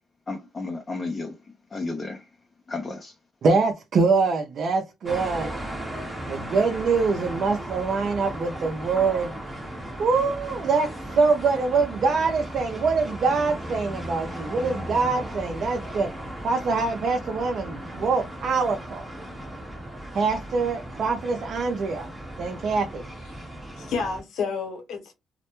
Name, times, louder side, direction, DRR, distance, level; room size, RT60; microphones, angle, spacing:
voice 1, 0.3-1.4 1.7-2.3 2.7-3.2, left 3 dB, 30° left, 0.5 m, -32 dB
voice 2, 3.4-5.6 6.3-9.3 10.0-10.9 11.2-16.1 16.4-19.1 20.1-22.1 22.4-23.1, right 4 dB, 60° right, 0.4 m, -24 dB
sound 1, 5.1-24.2, right 1 dB, 15° right, 0.9 m, -36 dB
voice 3, 23.3-25.1, left 5 dB, 75° left, 0.8 m, -31 dB
2.1 x 2.1 x 2.9 m
cardioid pair, 90°, 0 cm